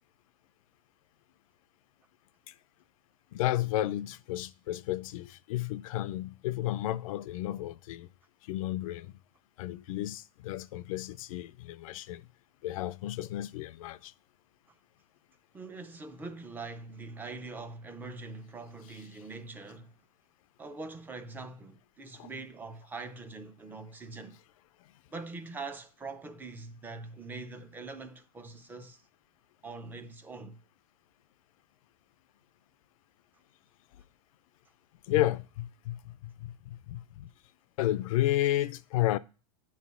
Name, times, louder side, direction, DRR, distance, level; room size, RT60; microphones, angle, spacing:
voice 1, 3.3-8.1 8.4-9.1 9.6-12.3 12.6-14.1 22.1-22.3 35.1-37.3 37.8-39.2, left 14 dB, 65° left, 0.4 m, -32 dB
voice 2, 15.5-20.0 20.6-24.4 25.1-29.0 29.6-30.6, right 3 dB, 10° right, 0.4 m, -43 dB
8.3 x 3.1 x 5.5 m
supercardioid pair, 140°, 19 cm